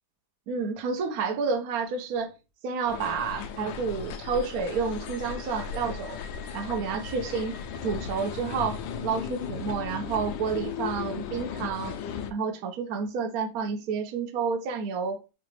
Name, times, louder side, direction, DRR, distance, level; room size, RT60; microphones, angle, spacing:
voice 1, 0.5-2.3 2.6-6.2 6.5-12.0 12.3-15.2, right 5 dB, 70° right, 0.9 m, -30 dB
sound 1, 2.9-12.3, left 7 dB, 75° left, 1.2 m, -36 dB
4.9 x 2.3 x 3.1 m
omnidirectional pair, 2.2 m